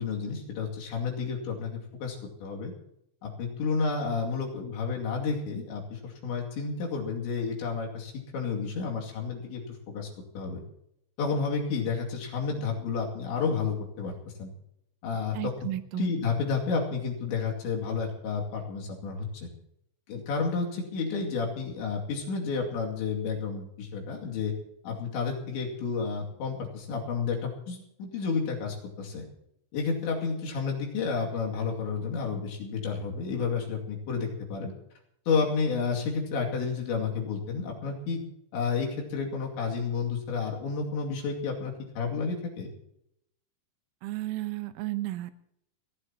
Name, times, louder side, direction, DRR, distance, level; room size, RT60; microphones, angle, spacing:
voice 1, 0.0-2.7 3.2-10.1 10.3-10.6 11.2-14.1 14.4-14.5 15.0-15.5 15.9-19.5 20.1-24.5 24.8-29.2 29.7-34.7 35.3-38.2 38.5-42.7, left 5 dB, 70° left, 0 dB, 4.6 m, -31 dB
voice 2, 15.3-16.1 44.0-45.3, right 16 dB, 80° right, 10 dB, 3.2 m, -33 dB
29.5 x 11.5 x 2.9 m, 0.77 s
omnidirectional pair, 5.6 m